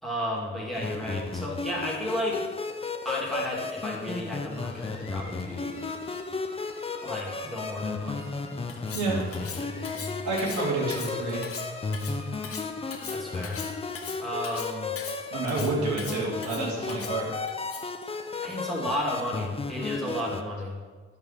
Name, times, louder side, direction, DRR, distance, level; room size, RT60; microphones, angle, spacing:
voice 1, 0.0-2.5 3.0-5.9 7.0-8.3 9.1-10.3 13.1-13.6 14.2-14.9 18.1-20.8, left 1 dB, ahead, -4 dB, 2.7 m, -33 dB
sound 1, 0.7-20.4, left 4 dB, 20° left, 0.7 m, -34 dB
sound 2, 4.5-14.1, left 3 dB, 75° left, 2.1 m, -49 dB
Cutlery silverware, 8.7-18.0, left 6 dB, 50° left, 1.1 m, -40 dB
voice 2, 8.9-9.3 10.0-11.4 15.3-17.3, right 3 dB, 80° right, -5 dB, 3.3 m, -29 dB
10.5 x 5.5 x 6.1 m, 1.5 s
cardioid pair, 90°, 30 cm